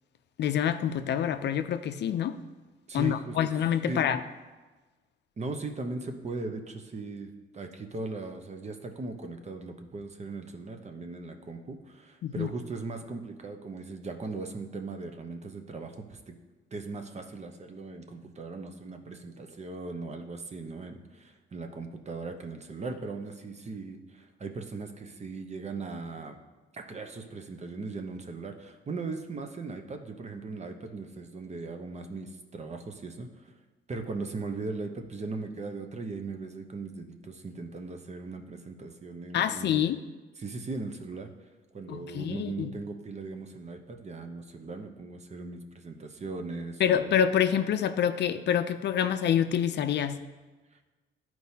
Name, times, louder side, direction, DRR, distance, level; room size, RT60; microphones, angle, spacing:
voice 1, 0.4-2.4 2.9-4.2 12.2-12.5 39.3-40.0 41.9-42.7 46.8-50.2, left 9 dB, 60° left, 10 dB, 0.5 m, -27 dB
voice 2, 2.9-3.4 3.9-4.2 5.4-16.4 16.7-26.4 26.7-33.5 33.9-39.8 40.4-41.3 41.7-47.1, right 3 dB, 35° right, 5 dB, 0.8 m, -38 dB
11.0 x 4.6 x 2.8 m, 1.2 s
cardioid pair, 90°, 20 cm